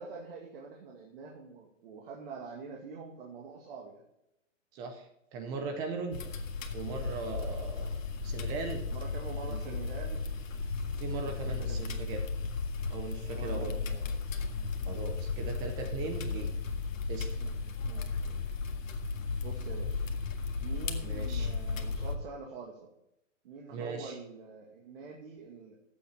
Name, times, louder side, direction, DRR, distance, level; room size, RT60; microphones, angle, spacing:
voice 1, 0.0-4.0 7.7-8.0 8.9-10.3 11.2-12.1 13.3-14.1 14.8-15.1 17.4-18.1 19.4-20.0 20.6-22.9 23.4-25.8, right 4 dB, 45° right, -1 dB, 2.3 m, -46 dB
voice 2, 4.7-6.2 6.7-8.0 8.2-8.9 9.5-9.8 11.0-12.3 12.9-13.7 14.8-16.5 17.1-17.4 21.0-21.5 23.7-24.2, right 4 dB, 10° right, 7 dB, 0.5 m, -39 dB
sound 1, 6.1-22.2, left 4 dB, 80° left, 1.8 m, -35 dB
15.0 x 7.9 x 4.1 m, 0.83 s
hypercardioid pair, 150°, 39 cm